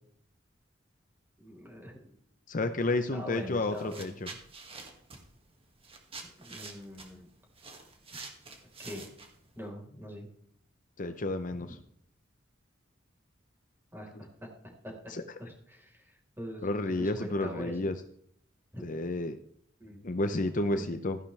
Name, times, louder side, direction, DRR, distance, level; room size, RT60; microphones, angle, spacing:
voice 1, 1.4-2.0 3.1-4.2 6.4-7.3 8.8-9.0 9.6-10.3 11.6-11.7 13.9-18.0 18.7-19.0 19.8-20.0 20.7-21.0, equal, 10° right, -1 dB, 4.3 m, -43 dB
voice 2, 2.5-4.3 11.0-11.7 15.1-15.2 16.6-17.9 18.8-19.4 20.0-21.2, left 2 dB, 45° left, 9 dB, 0.7 m, -31 dB
sound 1, 3.3-3.5 3.7-9.6, right 4 dB, 30° right, 2.1 m, -47 dB
14.5 x 11.0 x 3.4 m, 0.67 s
head